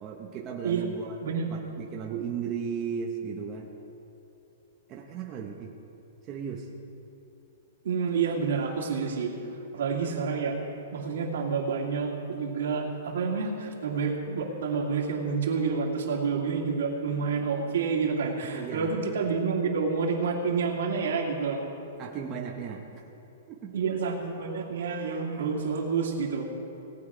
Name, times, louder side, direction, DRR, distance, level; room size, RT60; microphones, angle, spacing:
voice 1, 0.0-1.2 1.5-3.7 4.9-5.7 6.3-6.7 18.4-18.9 22.0-23.0 23.5-23.8, right 7 dB, 20° right, 0 dB, 0.7 m, -36 dB
voice 2, 7.8-9.3 9.7-10.6 10.9-21.6 23.7-26.4, right 5 dB, 65° right, 0 dB, 2.2 m, -28 dB
18.5 x 8.7 x 4.9 m, 2.9 s
hypercardioid pair, 175°, 0 cm